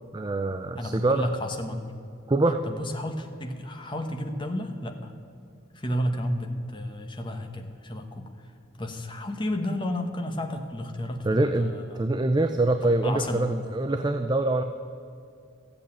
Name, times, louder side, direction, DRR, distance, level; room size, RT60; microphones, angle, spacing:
voice 1, 0.1-1.3 2.3-2.6 11.2-14.6, right 2 dB, 20° right, 8 dB, 0.4 m, -25 dB
voice 2, 0.8-1.8 2.6-5.1 5.7-8.5 8.8-12.1 13.0-13.4, left 1 dB, 25° left, 4 dB, 1.1 m, -32 dB
13.5 x 8.6 x 8.9 m, 2.5 s
head